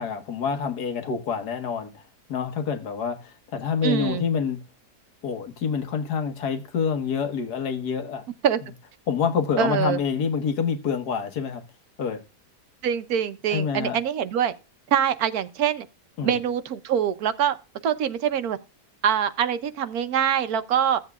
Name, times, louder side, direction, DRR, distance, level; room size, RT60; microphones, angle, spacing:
voice 1, 0.0-2.0 2.3-4.6 5.2-8.2 9.1-11.6 12.0-12.2 13.5-14.0 16.2-16.4, left 6 dB, 75° left, 1.8 m, -27 dB
voice 2, 3.8-4.3 8.4-8.6 9.6-10.0 12.8-14.5 14.9-15.9 16.2-17.6 17.8-18.6 19.0-21.0, right 9 dB, 65° right, 1.2 m, -24 dB
15.0 x 7.7 x 2.3 m
omnidirectional pair, 1.8 m